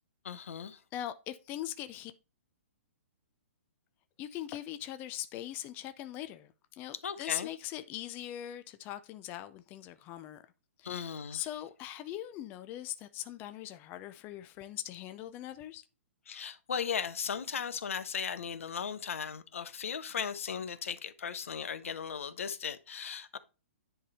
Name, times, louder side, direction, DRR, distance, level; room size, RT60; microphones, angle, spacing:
voice 1, 0.2-0.8 7.0-7.5 10.8-11.5 16.3-23.4, left 7 dB, 80° left, 0.8 m, -37 dB
voice 2, 0.9-2.1 4.2-10.4 10.8-15.8, left 13 dB, 25° left, 0.5 m, -41 dB
10.0 x 3.4 x 4.1 m
hypercardioid pair, 140°, 7 cm